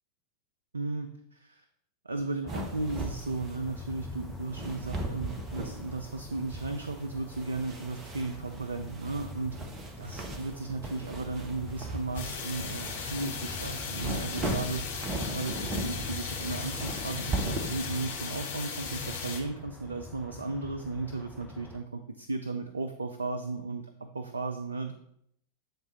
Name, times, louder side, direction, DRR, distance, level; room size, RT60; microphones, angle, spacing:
voice 1, 0.7-1.7 2.0-9.6 10.0-14.9 15.3-24.9, right 3 dB, 75° right, 7 dB, 0.4 m, -35 dB
sound 1, 2.4-21.8, left 3 dB, ahead, 0.7 m, -45 dB
sound 2, 2.5-17.9, right 1 dB, 25° right, 0.9 m, -38 dB
sound 3, 12.1-19.4, left 5 dB, 60° left, 1.4 m, -37 dB
7.9 x 3.7 x 4.1 m, 0.74 s
figure-of-eight pair, 90°, 0 cm